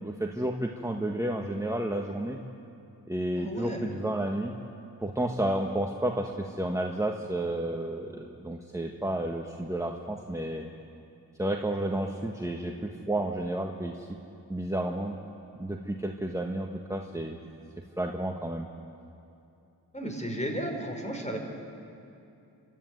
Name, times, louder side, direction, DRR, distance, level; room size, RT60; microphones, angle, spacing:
voice 1, 0.0-2.4 3.1-4.5 5.0-10.7 11.4-14.2 14.5-15.2 15.6-17.4 18.0-18.7, right 1 dB, 10° right, 1 dB, 1.6 m, -31 dB
voice 2, 3.3-3.9 19.9-21.4, right 1 dB, 20° left, 2 dB, 5.0 m, -34 dB
26.0 x 13.0 x 9.5 m, 2.7 s
cardioid pair, 45°, 39 cm